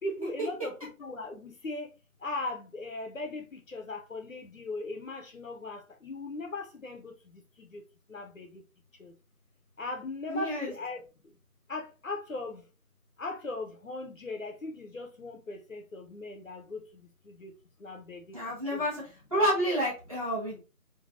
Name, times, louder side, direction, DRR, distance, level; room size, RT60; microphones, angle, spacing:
voice 1, 0.0-1.9 2.2-7.8 8.1-8.6 9.0-9.1 9.8-11.3 11.7-12.7 13.2-18.4 18.7-18.8, left 2 dB, 65° left, 0.6 m, -39 dB
voice 2, 10.3-10.7 18.3-19.0 19.3-20.6, equal, 25° right, 1.1 m, -29 dB
3.2 x 2.2 x 2.6 m
figure-of-eight pair, 165°, 43 cm